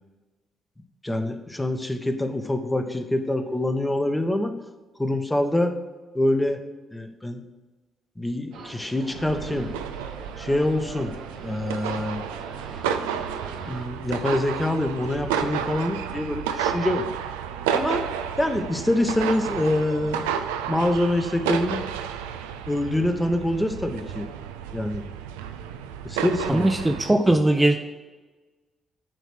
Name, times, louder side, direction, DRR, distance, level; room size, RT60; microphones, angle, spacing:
voice 1, 1.0-4.5 5.0-5.7 6.1-6.6 6.9-7.4 8.2-9.7 10.4-11.1 11.4-12.2 13.7-17.1 17.7-18.0 18.4-20.2 20.7-21.8 22.7-24.3 24.7-25.0 26.0-26.7, left 1 dB, 15° left, 6 dB, 1.0 m, -25 dB
sound 1, 8.5-13.8, right 4 dB, 70° right, 0.9 m, -41 dB
sound 2, 9.1-27.1, right 8 dB, 85° right, 0.3 m, -31 dB
voice 2, 26.5-27.8, right 1 dB, 15° right, 4 dB, 0.6 m, -20 dB
9.0 x 3.1 x 6.2 m, 1.2 s
hypercardioid pair, 45°, 0 cm